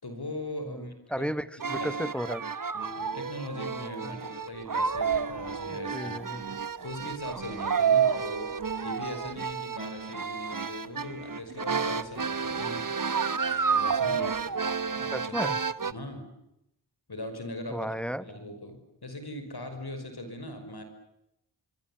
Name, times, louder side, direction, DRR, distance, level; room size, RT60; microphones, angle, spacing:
voice 1, 0.0-1.3 1.8-1.9 2.7-8.5 8.8-12.9 13.7-14.6 14.9-15.4 15.8-16.3 17.1-17.9 18.2-20.8, left 1 dB, 65° left, 7 dB, 5.8 m, -40 dB
voice 2, 0.7-2.4 4.0-4.2 5.7-6.4 14.1-14.2 15.1-15.6 17.7-18.2, equal, 5° left, 14 dB, 1.1 m, -34 dB
sound 1, 1.6-15.9, right 6 dB, 50° right, 1.1 m, -30 dB
25.0 x 24.5 x 8.8 m, 0.85 s
wide cardioid pair, 65°, 41 cm